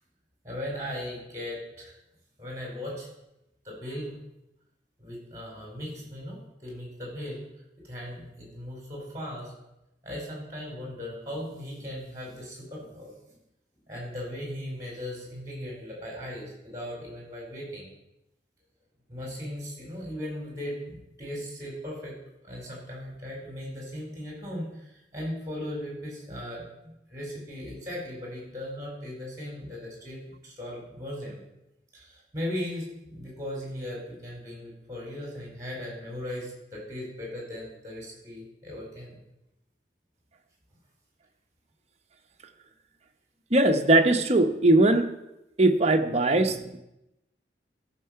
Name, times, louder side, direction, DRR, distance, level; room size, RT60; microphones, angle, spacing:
voice 1, 0.4-1.9 2.4-3.1 3.6-4.2 5.0-7.4 7.8-9.5 10.0-13.4 13.9-17.9 19.1-22.1 22.4-31.4 31.9-39.2, left 1 dB, 20° right, -2 dB, 4.5 m, -38 dB
voice 2, 43.5-45.2 45.6-46.8, right 2 dB, 35° right, 5 dB, 0.9 m, -20 dB
13.0 x 6.5 x 5.8 m, 0.89 s
head